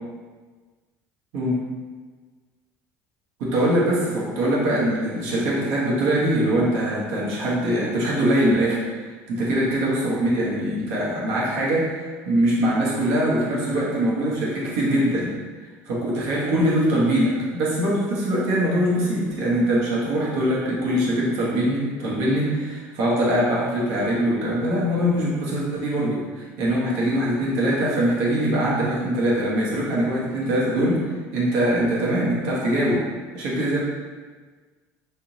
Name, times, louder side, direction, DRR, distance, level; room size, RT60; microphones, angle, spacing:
voice 1, 3.4-15.3 15.9-33.1 33.3-33.8, right 1 dB, 75° right, -5 dB, 0.9 m, -22 dB
3.3 x 2.8 x 2.7 m, 1.4 s
cardioid pair, 115°, 6 cm